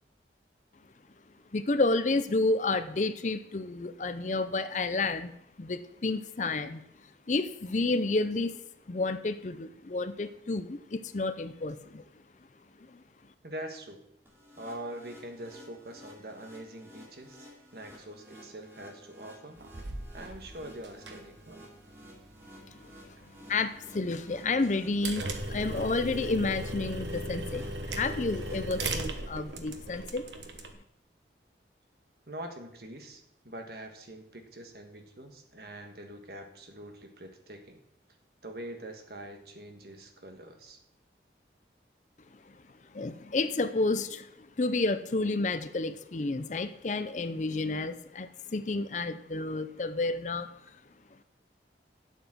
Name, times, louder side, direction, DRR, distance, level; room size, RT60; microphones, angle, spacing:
voice 1, 1.5-5.3 5.6-6.8 7.3-8.6 8.9-12.0 12.9-13.0 22.7-22.9 23.5-30.3 42.9-50.5, left 3 dB, 40° left, 12 dB, 0.5 m, -30 dB
voice 2, 13.4-14.0 14.6-19.6 20.1-21.7 32.3-37.8 38.4-40.8, right 1 dB, 60° right, 4 dB, 1.6 m, -44 dB
sound 1, 14.3-29.0, equal, 15° right, 2.7 m, -53 dB
sound 2, 19.6-30.7, right 2 dB, 85° right, 1.3 m, -38 dB
9.3 x 8.2 x 6.1 m, 0.79 s
head